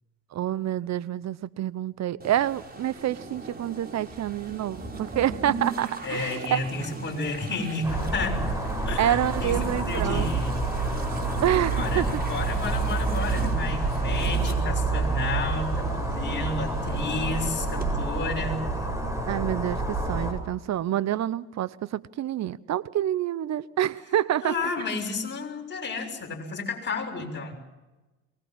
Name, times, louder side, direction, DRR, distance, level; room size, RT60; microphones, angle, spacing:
voice 1, 0.3-6.6 9.0-10.3 11.4-12.1 19.3-24.5, right 12 dB, 45° right, 19 dB, 0.9 m, -27 dB
sound 1, 2.2-17.9, right 3 dB, 25° right, 4.9 m, -39 dB
voice 2, 6.0-8.4 8.8-10.6 11.7-18.6 24.4-27.5, left 3 dB, 30° left, 1 dB, 6.6 m, -32 dB
sound 2, 7.8-20.3, right 3 dB, 10° right, 8.0 m, -28 dB
23.5 x 20.0 x 7.5 m, 1.1 s
hypercardioid pair, 75°, 39 cm